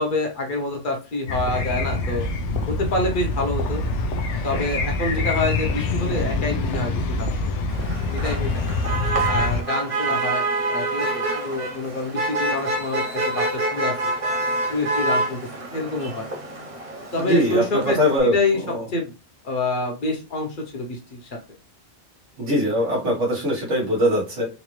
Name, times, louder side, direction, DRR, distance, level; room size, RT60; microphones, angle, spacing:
voice 1, 0.0-2.3 2.7-3.8 4.4-7.6 8.1-8.8 9.2-14.1 14.7-15.4 15.7-16.3 17.1-18.6 18.9-19.1 19.4-21.3, left 2 dB, 45° left, 2 dB, 1.0 m, -27 dB
sound 1, 1.3-9.6, left 3 dB, 80° left, 0.9 m, -25 dB
Motor vehicle (road), 7.7-18.2, right 2 dB, 35° right, 0.7 m, -27 dB
voice 2, 17.2-18.3 18.7-18.8 22.4-24.5, equal, 85° right, -4 dB, 1.8 m, -21 dB
4.1 x 2.5 x 3.1 m, 0.32 s
omnidirectional pair, 1.2 m